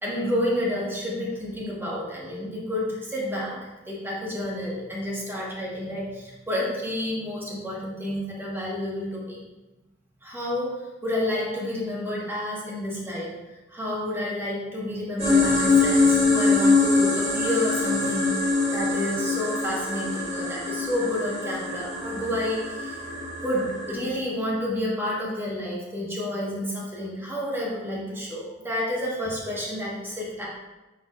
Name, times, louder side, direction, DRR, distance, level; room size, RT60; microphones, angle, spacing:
voice 1, 0.0-9.4 10.2-13.3 13.7-23.0 23.4-30.5, left 1 dB, 10° right, -6 dB, 1.0 m, -30 dB
sound 1, 15.2-23.9, left 3 dB, 35° right, 1.4 m, -23 dB
4.9 x 4.6 x 2.3 m, 1.1 s
head